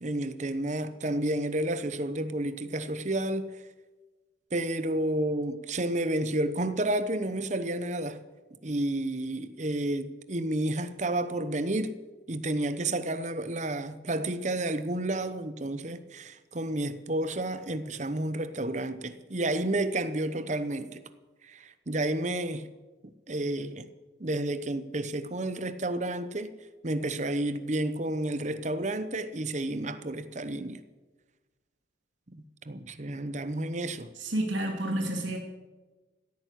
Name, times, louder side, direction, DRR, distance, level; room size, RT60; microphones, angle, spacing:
voice 1, 0.0-3.6 4.5-8.2 8.6-12.0 12.3-21.0 21.4-22.7 23.0-23.9 24.2-26.5 26.8-30.8 32.3-34.1, right 1 dB, 40° right, 0.9 m, -31 dB
voice 2, 34.2-35.4, right 1 dB, 75° right, 2.7 m, -29 dB
16.0 x 9.2 x 8.4 m
head